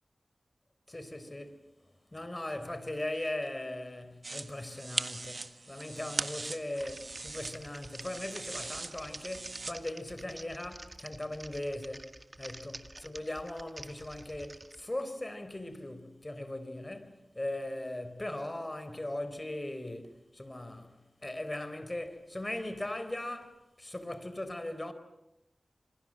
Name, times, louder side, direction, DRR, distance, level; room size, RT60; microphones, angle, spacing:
voice 1, 0.9-1.6 2.1-12.1 12.4-24.9, left 1 dB, 30° left, 4.1 m, -39 dB
sound 1, 4.2-9.7, right 3 dB, 60° right, 1.7 m, -40 dB
Typing, 6.7-14.8, right 1 dB, 35° right, 1.9 m, -49 dB
27.5 x 26.5 x 7.7 m
wide cardioid pair, 50°, 0 cm